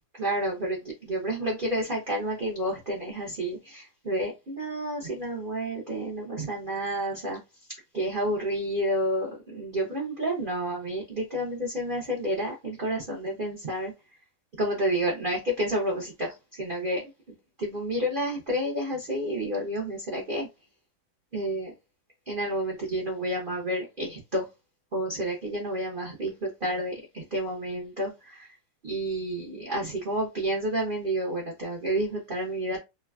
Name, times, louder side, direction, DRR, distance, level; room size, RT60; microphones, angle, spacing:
voice 1, 0.2-7.4 7.9-13.9 14.5-17.1 17.6-20.5 21.3-21.7 22.3-24.5 24.9-28.5 28.8-32.8, right 1 dB, 55° right, 0.5 m, -30 dB
3.1 x 2.2 x 2.3 m
omnidirectional pair, 2.0 m